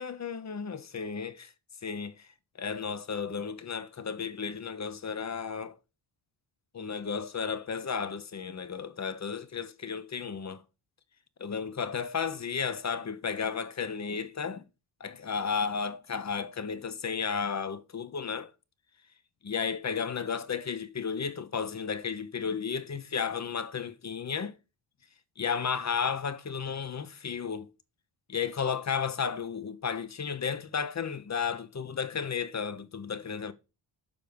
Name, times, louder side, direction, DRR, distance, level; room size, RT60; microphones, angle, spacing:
voice 1, 0.0-1.5 1.8-2.3 2.6-5.8 6.7-10.6 11.4-14.6 15.0-18.5 19.4-24.6 25.4-27.7 28.3-33.5, left 6 dB, 35° left, 0.9 m, -33 dB
6.9 x 4.8 x 5.2 m
cardioid pair, 80°, 48 cm